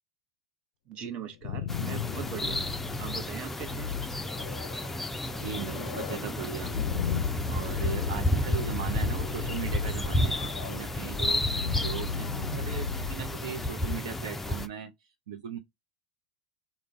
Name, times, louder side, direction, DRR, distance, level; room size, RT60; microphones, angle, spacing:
voice 1, 0.9-2.7 3.0-4.0, right 8 dB, 40° right, 1.1 m, -40 dB
sound 1, 1.2-14.0, left 6 dB, 65° left, 0.4 m, -36 dB
sound 2, 1.7-14.7, left 1 dB, 10° left, 0.5 m, -32 dB
voice 2, 5.4-6.8 7.5-11.4 11.8-14.9 15.3-15.6, right 8 dB, 70° right, 0.7 m, -38 dB
3.7 x 2.3 x 3.5 m
hypercardioid pair, 100°, 3 cm